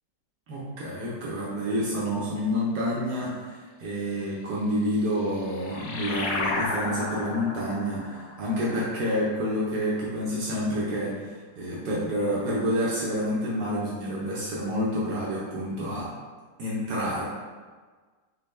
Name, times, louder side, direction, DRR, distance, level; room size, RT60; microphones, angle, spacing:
voice 1, 0.5-16.1 16.6-17.2, equal, 75° right, -6 dB, 1.3 m, -28 dB
sound 1, 4.9-10.0, left 3 dB, 75° left, 1.1 m, -33 dB
5.2 x 2.1 x 3.1 m, 1.4 s
omnidirectional pair, 1.8 m